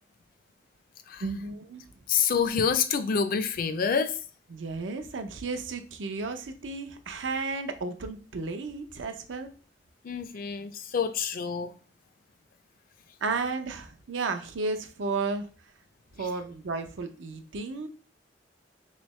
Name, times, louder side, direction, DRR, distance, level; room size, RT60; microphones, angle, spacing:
voice 1, 1.2-1.8 4.5-9.5 13.2-15.5 16.1-17.9, right 4 dB, 85° right, 7 dB, 0.5 m, -33 dB
voice 2, 2.1-4.1 10.0-11.7, left 6 dB, 50° left, 8 dB, 0.4 m, -27 dB
3.5 x 3.2 x 3.1 m, 0.40 s
head